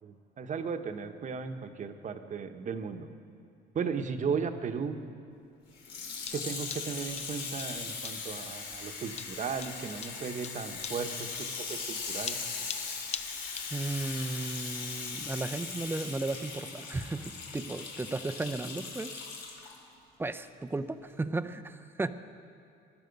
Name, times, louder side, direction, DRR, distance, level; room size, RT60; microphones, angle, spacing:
voice 1, 0.0-3.1 3.7-5.0 6.3-12.4, right 6 dB, 40° right, 7 dB, 1.1 m, -36 dB
sound 1, 5.7-13.8, left 7 dB, 35° left, 0.6 m, -43 dB
Water tap faucet / Sink (filling or washing), 5.8-19.8 20.4-20.5, left 5 dB, 85° left, 3.0 m, -39 dB
voice 2, 13.7-19.2 20.2-22.1, right 2 dB, 10° right, 11 dB, 0.6 m, -35 dB
20.5 x 12.5 x 5.3 m, 2.6 s
cardioid pair, 120°, 19 cm